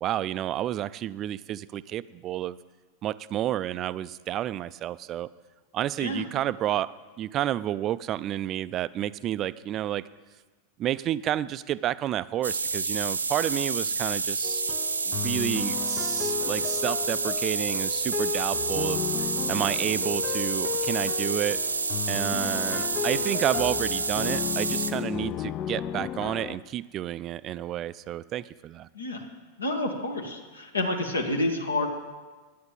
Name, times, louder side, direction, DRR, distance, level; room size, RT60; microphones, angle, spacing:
voice 1, 0.0-2.6 3.0-5.3 5.7-6.9 7.2-10.1 10.8-14.6 15.1-19.0 19.5-21.6 22.1-28.9, right 12 dB, 30° right, 16 dB, 0.4 m, -30 dB
sound 1, 12.4-24.9, right 4 dB, 75° right, 0.7 m, -29 dB
sound 2, 14.4-26.6, left 11 dB, 35° left, 0.4 m, -34 dB
voice 2, 29.6-31.9, left 2 dB, 75° left, 3 dB, 1.6 m, -29 dB
10.5 x 9.3 x 7.4 m, 1.3 s
figure-of-eight pair, 90°, 0 cm